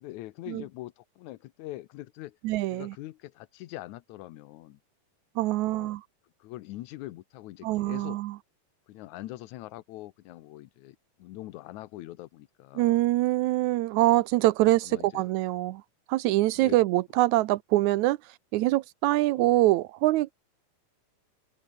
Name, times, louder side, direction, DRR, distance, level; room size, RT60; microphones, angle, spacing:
voice 1, 0.0-2.4 2.7-4.8 5.6-6.0 6.4-8.2 8.9-13.0 14.8-15.3 16.6-16.8 19.4-19.5, left 16 dB, 85° left, 2.2 m, -43 dB
voice 2, 2.4-3.0 5.4-6.0 7.6-8.4 12.8-15.8 16.1-18.2 18.5-20.3, right 17 dB, 90° right, 2.1 m, -24 dB
omnidirectional pair, 3.4 m